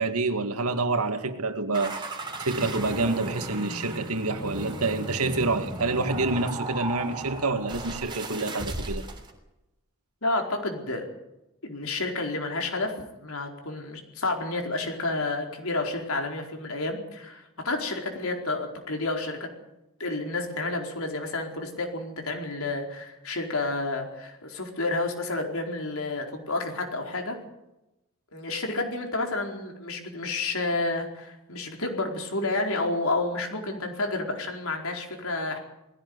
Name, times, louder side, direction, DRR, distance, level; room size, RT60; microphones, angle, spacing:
voice 1, 0.0-2.1 2.4-9.0, right 3 dB, 90° right, 2.1 m, -27 dB
sound 1, 1.7-9.3, right 1 dB, 20° right, 3.5 m, -35 dB
voice 2, 10.2-11.1 11.6-12.9 13.2-19.5 20.0-27.3 28.3-35.6, left 2 dB, 70° left, 4.6 m, -30 dB
20.5 x 16.5 x 9.7 m
head